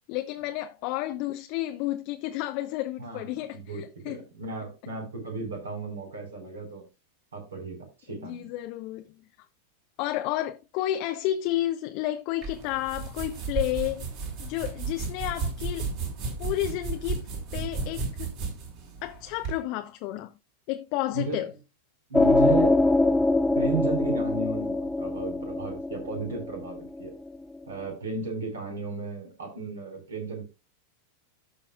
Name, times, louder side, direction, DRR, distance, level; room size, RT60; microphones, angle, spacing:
voice 1, 0.1-4.2 8.2-9.1 10.0-14.1 14.4-15.9 16.4-18.3 19.0-20.3 20.7-21.5, left 14 dB, 45° left, 0.8 m, -31 dB
voice 2, 3.0-6.8 7.3-8.5 21.1-21.4 22.1-22.9 23.5-27.1 27.7-30.5, right 4 dB, 65° right, 5.0 m, -34 dB
sound 1, 12.4-19.6, right 4 dB, 40° right, 4.4 m, -33 dB
sound 2, 22.1-27.4, left 2 dB, 5° left, 0.5 m, -23 dB
16.5 x 5.8 x 2.4 m
figure-of-eight pair, 90°, 0 cm